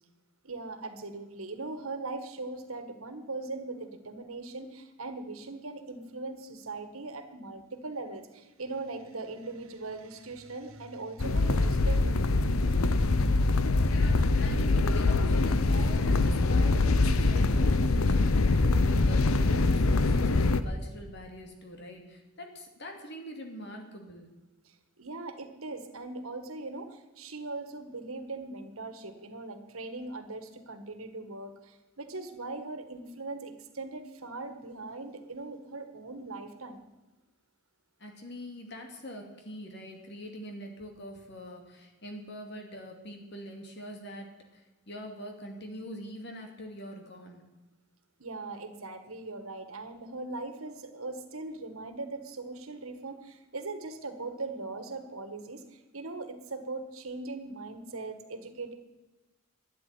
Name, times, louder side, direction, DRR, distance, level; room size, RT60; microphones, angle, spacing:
voice 1, 0.4-12.2 24.6-36.8 48.2-58.7, right 3 dB, 85° right, 8 dB, 1.7 m, -40 dB
sound 1, 11.2-20.6, left 3 dB, 85° left, 0.8 m, -24 dB
voice 2, 13.8-24.3 38.0-47.4, equal, 50° left, 3 dB, 2.7 m, -44 dB
12.0 x 9.9 x 9.7 m, 1.1 s
head